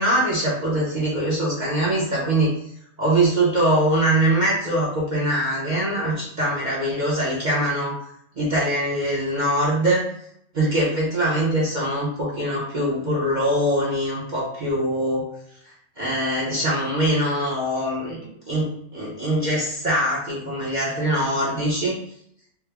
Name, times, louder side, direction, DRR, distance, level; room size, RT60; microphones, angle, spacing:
voice 1, 0.0-2.5 3.0-8.0 8.4-10.0 10.5-15.2 16.0-22.0, right 1 dB, 40° right, -7 dB, 0.8 m, -23 dB
3.4 x 2.1 x 3.3 m, 0.73 s
omnidirectional pair, 1.5 m